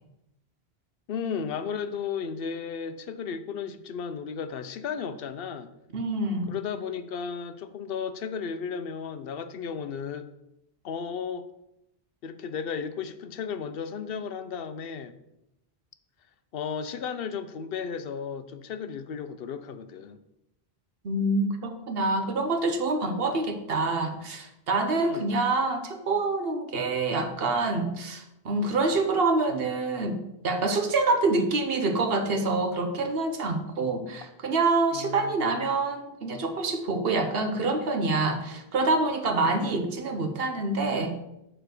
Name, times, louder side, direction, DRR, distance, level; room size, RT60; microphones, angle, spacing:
voice 1, 1.1-5.7 6.5-10.3 10.8-11.5 12.2-15.1 16.5-20.2 24.9-25.4 34.9-35.5 39.4-39.7, left 6 dB, 65° left, 11 dB, 0.8 m, -34 dB
voice 2, 5.9-6.5 21.0-30.2 30.4-41.2, right 3 dB, 65° right, 6 dB, 1.1 m, -26 dB
6.8 x 4.4 x 6.4 m, 0.86 s
omnidirectional pair, 1.1 m